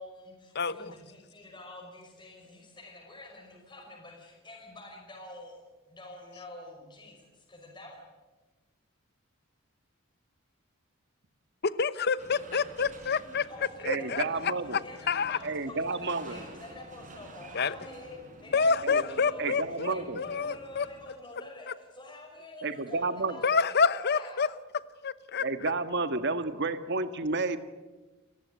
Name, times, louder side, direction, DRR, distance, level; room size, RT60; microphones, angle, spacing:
voice 1, 0.0-5.6 5.9-8.0 13.5-14.5 14.8-24.4, left 1 dB, 20° left, -1 dB, 5.8 m, -47 dB
voice 2, 0.5-0.9 11.6-13.5 13.8-14.8 15.1-15.4 17.5-17.8 18.5-20.9 21.7-21.8 23.4-24.5 25.0-25.7, left 5 dB, 50° left, 16 dB, 0.9 m, -28 dB
sound 1, 12.2-21.1, right 2 dB, 40° right, 4.7 m, -51 dB
voice 3, 13.8-14.8 15.4-16.4 18.8-19.0 19.4-20.2 22.6-23.4 25.4-27.6, right 3 dB, 55° right, 10 dB, 1.6 m, -31 dB
30.0 x 15.0 x 9.5 m, 1.2 s
head